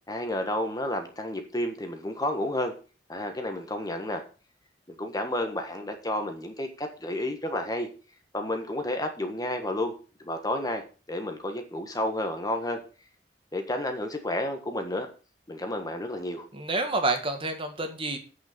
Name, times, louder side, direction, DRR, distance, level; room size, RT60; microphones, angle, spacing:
voice 1, 0.1-2.7 3.1-4.2 4.9-7.9 8.3-9.9 10.2-10.8 11.1-12.8 13.5-15.1 15.5-16.4, left 1 dB, 20° left, 5 dB, 1.5 m, -31 dB
voice 2, 16.5-18.2, right 2 dB, 30° right, 5 dB, 1.7 m, -28 dB
8.6 x 6.6 x 6.7 m, 0.35 s
head